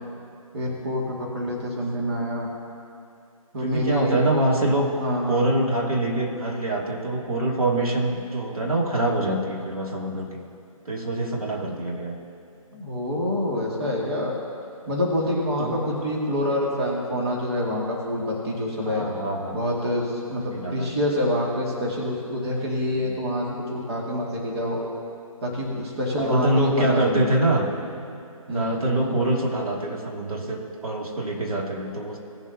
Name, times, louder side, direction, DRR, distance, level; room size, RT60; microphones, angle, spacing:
voice 1, 0.5-2.5 3.5-4.2 5.0-5.5 12.7-14.4 14.9-19.1 19.5-24.8 25.4-27.3 28.5-28.8, left 1 dB, 45° right, -3 dB, 2.2 m, -26 dB
voice 2, 3.6-4.9 5.3-10.4 10.9-12.2 15.6-15.8 18.8-19.6 20.5-20.9 26.2-27.6 28.5-32.2, right 2 dB, 75° right, -2 dB, 2.6 m, -25 dB
19.0 x 7.3 x 2.9 m, 2.5 s
figure-of-eight pair, 150°, 18 cm